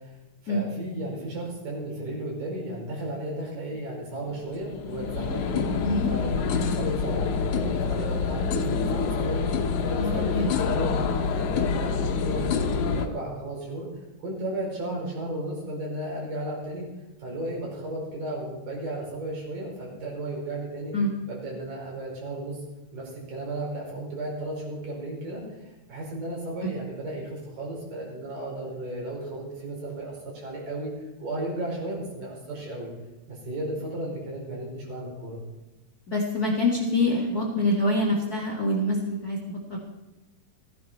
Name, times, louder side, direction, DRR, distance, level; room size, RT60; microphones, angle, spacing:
voice 1, 0.4-5.7 6.1-13.9 14.2-16.9 17.2-20.9 21.3-22.6 22.9-30.9 31.2-32.9 33.3-35.4, right 1 dB, 70° right, -2 dB, 6.5 m, -34 dB
sound 1, 4.3-13.1, left 5 dB, 70° left, 2.4 m, -26 dB
voice 2, 8.7-9.1 9.9-10.6 20.9-21.1 26.6-26.7 36.1-39.8, left 1 dB, 35° left, -1 dB, 2.0 m, -26 dB
15.5 x 14.5 x 4.5 m, 1.0 s
omnidirectional pair, 3.9 m